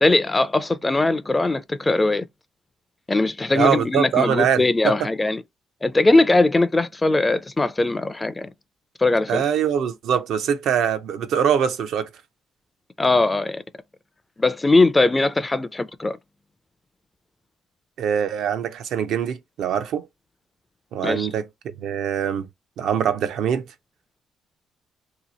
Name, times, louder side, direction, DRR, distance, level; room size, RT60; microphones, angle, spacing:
voice 1, 0.0-2.3 3.1-5.4 5.8-8.5 9.0-9.4 13.0-13.6 14.4-16.2 21.0-21.3, left 2 dB, 20° left, 0.4 m, -20 dB
voice 2, 3.5-4.9 9.3-12.1 18.0-20.0 20.9-22.5 22.8-23.7, right 8 dB, 80° right, 0.5 m, -23 dB
2.9 x 2.4 x 4.0 m
cardioid pair, 90°, 0 cm